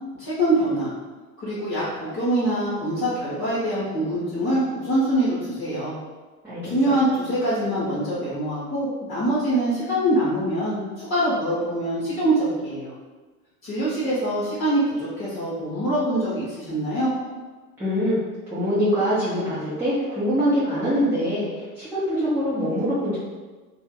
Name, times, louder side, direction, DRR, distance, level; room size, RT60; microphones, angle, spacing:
voice 1, 0.2-0.9 1.4-5.9 6.6-12.9 13.6-17.1, right 1 dB, 30° left, -10 dB, 1.0 m, -24 dB
voice 2, 17.8-18.2 18.5-23.2, equal, 5° right, -13 dB, 0.8 m, -24 dB
2.7 x 2.2 x 3.6 m, 1.3 s
figure-of-eight pair, 75°, 45 cm